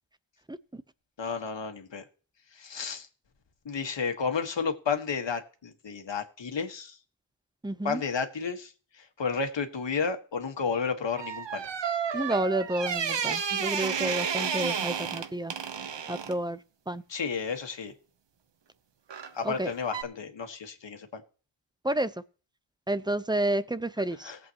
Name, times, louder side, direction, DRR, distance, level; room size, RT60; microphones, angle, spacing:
voice 1, 0.5-0.8 7.6-8.0 12.1-15.5 16.1-17.0 19.4-19.7 21.8-22.1 22.9-24.3, right 1 dB, 10° right, 0.8 m, -30 dB
voice 2, 1.2-2.0 2.5-3.1 3.7-7.0 7.8-11.6 17.1-17.9 19.3-21.2 24.2-24.4, left 5 dB, 70° left, 1.8 m, -32 dB
sound 1, 11.2-16.4 19.1-19.4 19.9-20.0, right 7 dB, 70° right, 1.1 m, -31 dB
18.5 x 8.1 x 3.1 m
cardioid pair, 60°, 45 cm